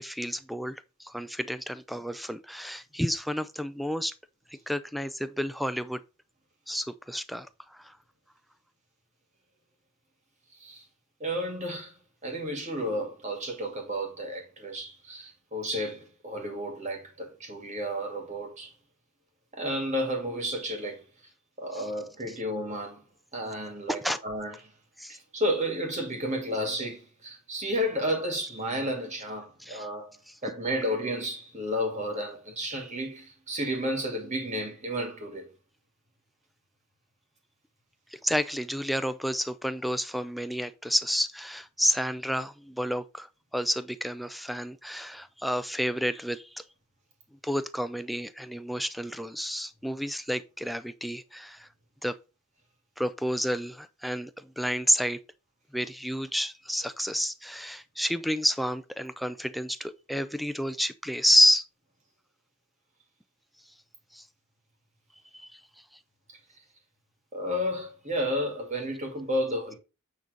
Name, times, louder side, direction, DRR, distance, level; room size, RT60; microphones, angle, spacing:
voice 1, 0.0-4.1 4.7-6.0 6.7-7.5 21.7-21.8 24.0-24.2 25.0-25.2 29.6-29.9 38.1-43.3 43.5-46.6 47.4-51.7 52.0-52.2 53.0-55.2 55.7-61.6 64.1-64.2 65.3-65.6, equal, ahead, 0.4 m, -30 dB
voice 2, 10.5-10.9 11.2-11.9 12.2-18.7 19.5-21.0 21.6-23.0 23.3-24.6 25.1-35.5 66.3-66.4 67.3-69.8, equal, 30° right, 2.7 m, -32 dB
9.0 x 4.0 x 5.2 m
head